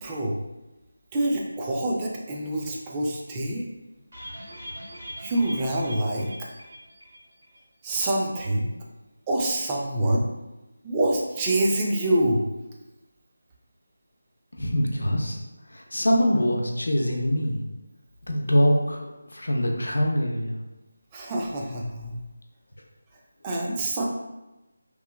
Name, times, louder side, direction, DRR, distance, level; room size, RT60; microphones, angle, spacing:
voice 1, 0.0-0.4 1.1-3.7 5.2-6.3 7.8-8.7 9.3-10.3 10.8-12.4 21.1-22.2 23.4-24.0, right 1 dB, 15° right, -2 dB, 0.3 m, -26 dB
sound 1, 4.1-7.6 7.8-7.9 8.2-8.3, equal, 75° right, 1.4 m, -41 dB
voice 2, 14.6-15.4 15.7-17.6 18.3-19.0 19.3-20.6, equal, 85° left, 1 dB, 0.5 m, -23 dB
3.0 x 2.2 x 2.2 m, 1.0 s
figure-of-eight pair, 170°, 0 cm